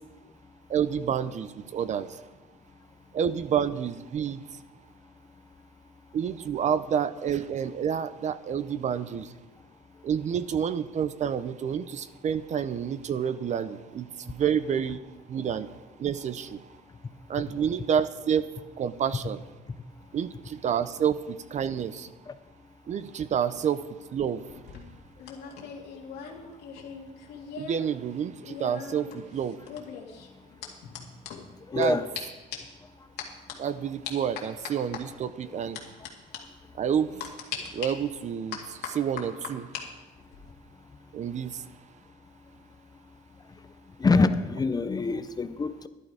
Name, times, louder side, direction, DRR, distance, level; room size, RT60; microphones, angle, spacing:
voice 1, 0.7-2.1 3.1-4.4 6.1-9.3 10.0-15.0 15.3-15.7 16.0-16.6 17.3-18.5 18.8-19.4 20.1-22.1 22.9-23.8 24.1-24.4 27.6-29.6 31.7-32.0 33.6-35.8 36.8-37.1 37.7-39.7 41.1-41.6, right 8 dB, 45° right, 14 dB, 0.6 m, -29 dB
sound 1, 24.5-27.9 28.1-31.9 32.1-32.2 32.5-32.8 33.2-33.5 34.0-35.0 35.7-36.1 36.3-36.4 37.2-37.9 38.5-39.8 40.2-40.5, left 8 dB, 85° left, 2.2 m, -39 dB
voice 2, 31.7-32.0 35.5-35.6 44.0-45.9, left 3 dB, 25° left, 11 dB, 0.7 m, -25 dB
13.0 x 11.0 x 4.8 m, 1.1 s
cardioid pair, 110°, 17 cm